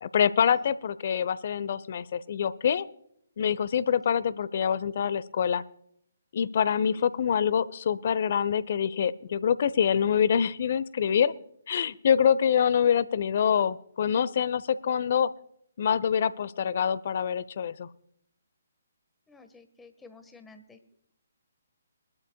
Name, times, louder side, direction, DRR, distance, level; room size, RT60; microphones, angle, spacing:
voice 1, 0.0-2.9 3.4-5.6 6.3-11.3 11.7-15.3 15.8-17.9, left 8 dB, 50° left, 18 dB, 0.8 m, -25 dB
voice 2, 19.3-20.8, left 3 dB, 5° left, 7 dB, 1.5 m, -52 dB
23.5 x 12.5 x 2.3 m, 0.70 s
figure-of-eight pair, 140°, 0 cm